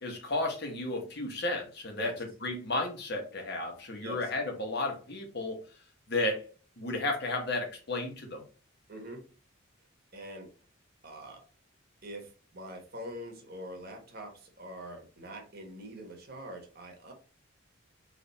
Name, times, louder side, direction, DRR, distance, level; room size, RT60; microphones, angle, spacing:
voice 1, 0.0-2.1 2.4-5.6 6.1-6.4 6.8-8.4, left 2 dB, 55° left, 2 dB, 1.3 m, -33 dB
voice 2, 8.9-9.2 10.1-10.5 11.0-11.4 12.0-17.1, equal, 50° right, 3 dB, 1.3 m, -44 dB
3.5 x 3.5 x 4.1 m, 0.36 s
head